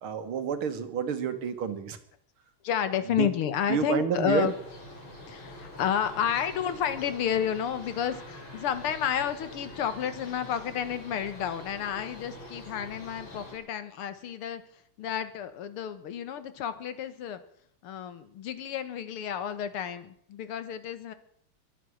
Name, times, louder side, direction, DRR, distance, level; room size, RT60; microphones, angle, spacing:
voice 1, 0.0-2.0 3.2-3.3 3.7-4.5, right 7 dB, 75° right, 9 dB, 2.2 m, -29 dB
voice 2, 2.6-4.5 5.3-14.6 15.0-17.4 17.8-21.1, left 9 dB, 85° left, 12 dB, 2.2 m, -31 dB
sound 1, 4.4-13.6, left 1 dB, 65° left, 4.7 m, -45 dB
23.5 x 8.4 x 6.4 m, 0.67 s
omnidirectional pair, 2.4 m